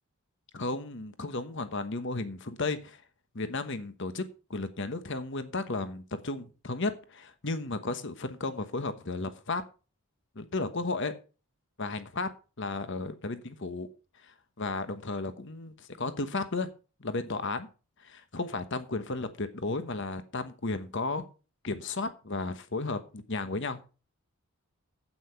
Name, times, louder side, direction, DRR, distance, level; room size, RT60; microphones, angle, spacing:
voice 1, 0.5-3.0 3.3-4.2 4.5-9.6 10.3-11.1 11.8-12.3 12.6-13.9 14.6-16.7 17.0-17.7 18.0-21.2 21.6-23.8, left 3 dB, 55° left, 11 dB, 1.2 m, -34 dB
8.7 x 8.6 x 5.8 m, 0.35 s
head